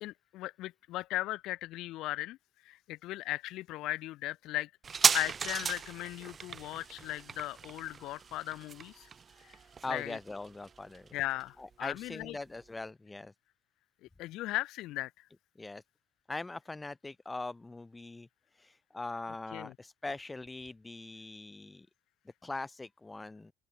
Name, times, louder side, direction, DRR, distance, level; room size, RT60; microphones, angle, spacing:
voice 1, 0.0-2.4 2.6-4.7 5.1-9.1 9.4-9.5 9.9-10.2 11.1-12.4 14.2-15.1 19.5-19.7, left 17 dB, 70° left, 0.4 m, -37 dB
sound 1, 4.8-11.9 12.2-12.3, right 6 dB, 30° right, 1.3 m, -34 dB
voice 2, 9.8-11.1 11.6-13.3 15.6-15.8 16.3-18.3 18.5-21.9 22.4-23.5, left 2 dB, 15° left, 1.8 m, -41 dB
open air
cardioid pair, 125°, 0 cm